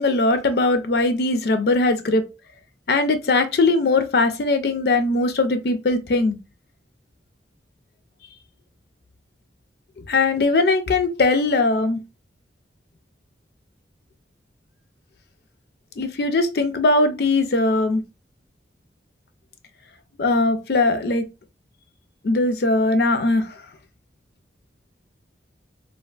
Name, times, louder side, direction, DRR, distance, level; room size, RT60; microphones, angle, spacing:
voice 1, 0.0-2.3 2.9-6.4 10.1-12.0 16.0-18.0 20.2-21.3 22.2-23.5, left 2 dB, 60° left, 0.4 m, -20 dB
3.4 x 2.4 x 2.3 m
head